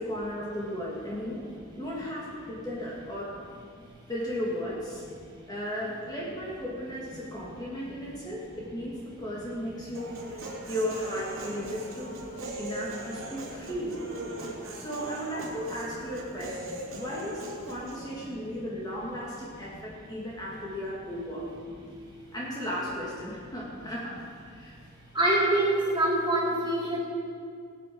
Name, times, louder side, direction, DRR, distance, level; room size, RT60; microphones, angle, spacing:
voice 1, 0.0-1.5 1.8-3.4 4.1-5.0 5.5-12.2 12.6-14.1 14.4-21.5 22.3-24.8, equal, 20° left, -5 dB, 2.2 m, -35 dB
Human voice, 9.9-18.0, right 2 dB, 75° right, 3.0 m, -40 dB
voice 2, 25.1-27.0, right 1 dB, 20° right, -5 dB, 3.5 m, -24 dB
19.5 x 8.9 x 5.3 m, 2.2 s
head